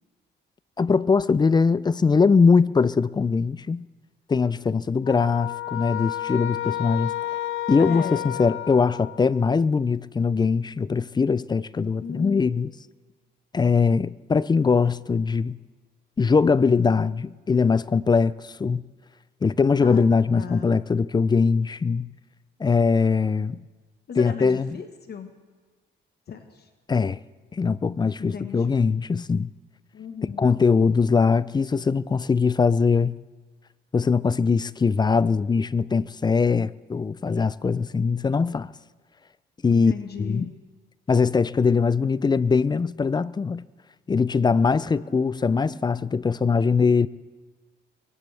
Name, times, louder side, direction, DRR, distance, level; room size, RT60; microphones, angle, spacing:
voice 1, 0.8-3.9 4.3-7.1 7.7-8.1 8.4-12.7 13.5-15.6 16.2-18.8 19.4-22.1 22.6-23.6 24.2-24.7 26.9-27.2 27.5-29.5 30.4-33.2 33.9-38.7 39.6-39.9 40.2-40.5 41.1-43.7 44.1-47.1, left 5 dB, 20° left, 0.4 m, -21 dB
sound 1, 5.0-9.5, left 13 dB, 80° left, 0.5 m, -31 dB
voice 2, 7.8-8.3 12.0-12.7 19.8-20.8 24.1-25.3 26.3-26.7 28.2-28.7 29.9-30.5 39.7-40.5 44.9-46.0, left 7 dB, 55° left, 1.3 m, -37 dB
23.0 x 18.0 x 3.4 m
cardioid pair, 90°, 20 cm